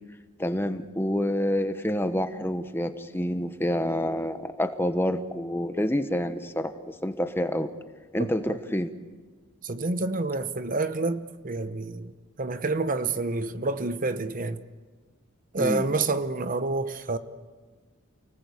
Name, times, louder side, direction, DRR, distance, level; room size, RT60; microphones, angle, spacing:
voice 1, 0.4-7.7 8.1-8.9 15.6-15.8, equal, 10° left, 1.0 m, -28 dB
voice 2, 8.2-8.6 9.6-12.1 12.4-14.6 15.5-17.2, right 3 dB, 40° right, 0.9 m, -28 dB
29.0 x 19.5 x 8.4 m
head